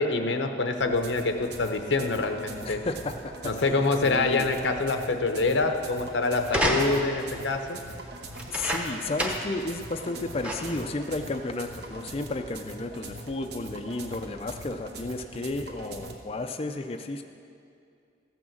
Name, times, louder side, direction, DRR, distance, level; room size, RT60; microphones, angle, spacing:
voice 1, 0.0-2.8 3.4-7.8, left 3 dB, 90° left, 6 dB, 0.9 m, -26 dB
sound 1, 0.8-16.2, right 2 dB, 65° right, 1.0 m, -43 dB
voice 2, 2.6-4.5 8.5-17.2, left 2 dB, 30° left, 6 dB, 0.4 m, -33 dB
sound 2, 6.4-7.3 8.3-9.6 10.0-10.1 10.4-10.9 11.6-11.7, equal, 10° right, 0.9 m, -29 dB
14.5 x 6.2 x 7.2 m, 2.5 s
head